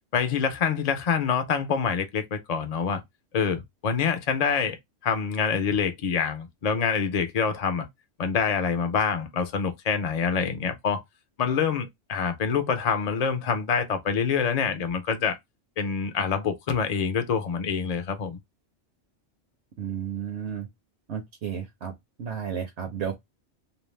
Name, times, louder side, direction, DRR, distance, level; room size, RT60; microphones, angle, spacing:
voice 1, 0.1-3.0 3.3-4.8 5.0-7.9 8.2-11.0 11.4-15.4 15.8-18.4, left 6 dB, 45° left, 0.5 m, -26 dB
voice 2, 19.8-20.7 21.1-21.9 22.2-23.1, right 8 dB, 70° right, 0.9 m, -32 dB
2.6 x 2.0 x 3.1 m
omnidirectional pair, 1.2 m